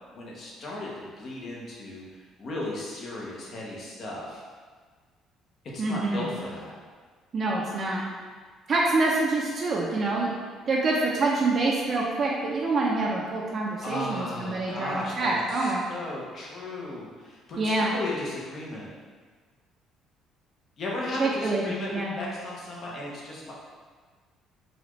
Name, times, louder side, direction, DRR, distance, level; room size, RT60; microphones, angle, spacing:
voice 1, 0.1-4.4 5.7-6.7 13.8-18.9 20.8-23.5, left 2 dB, 50° left, -4 dB, 1.0 m, -36 dB
voice 2, 5.8-6.3 7.3-8.0 8.7-10.3 10.7-15.8 17.6-18.0 21.2-22.1, right 2 dB, 45° right, -4 dB, 0.6 m, -26 dB
4.1 x 2.5 x 3.1 m, 1.5 s
cardioid pair, 90°, 0 cm